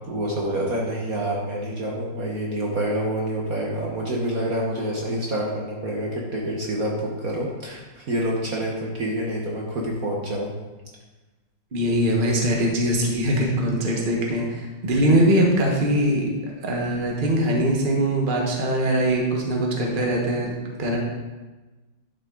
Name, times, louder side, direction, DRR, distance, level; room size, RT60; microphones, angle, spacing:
voice 1, 0.1-10.5, right 1 dB, 50° right, -3 dB, 1.6 m, -27 dB
voice 2, 11.7-16.3 16.6-20.5 20.8-21.0, right 1 dB, 30° right, -1 dB, 1.5 m, -22 dB
11.0 x 6.6 x 3.9 m, 1.2 s
omnidirectional pair, 2.1 m